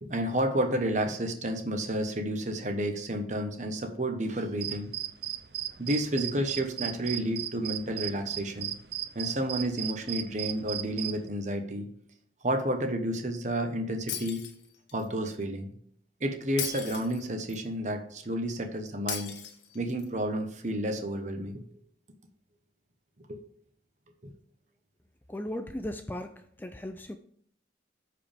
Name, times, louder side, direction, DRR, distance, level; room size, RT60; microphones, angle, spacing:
voice 1, 0.0-4.9 5.8-8.7 9.1-11.9 12.4-14.4 14.9-15.7 16.2-19.4 19.7-21.6 23.3-23.4, right 1 dB, 40° right, 5 dB, 1.2 m, -31 dB
sound 1, 4.6-11.3, right 12 dB, 65° right, 0.6 m, -36 dB
Shatter, 14.1-15.1 16.6-17.6 19.1-20.1, left 8 dB, 80° left, 1.2 m, -37 dB
voice 2, 25.3-27.2, left 1 dB, 10° left, 7 dB, 0.4 m, -37 dB
14.0 x 4.9 x 3.5 m, 0.63 s
head